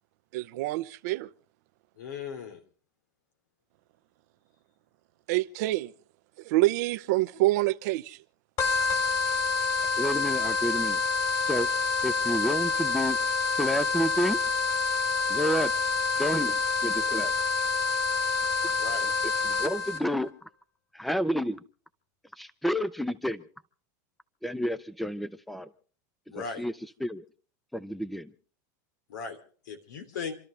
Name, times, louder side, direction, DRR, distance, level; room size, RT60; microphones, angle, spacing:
voice 1, 0.3-1.3 5.3-5.9 6.4-8.2, right 18 dB, 65° right, 0.8 m, -26 dB
voice 2, 2.0-2.6 18.8-19.1 26.3-26.6 29.1-29.4 29.6-30.4, left 5 dB, 90° left, 3.1 m, -37 dB
sound 1, 8.6-20.0, left 4 dB, 40° left, 3.4 m, -27 dB
voice 3, 10.0-11.0 11.4-11.7 12.0-13.2 13.6-14.4 15.3-15.7 16.2-16.6 16.8-17.3 19.4-20.3 20.9-21.6 22.4-23.4 24.4-25.7 26.4-26.7 27.0-27.3 27.7-28.3, equal, ahead, 0.7 m, -29 dB
28.5 x 12.5 x 3.4 m
supercardioid pair, 135°, 10 cm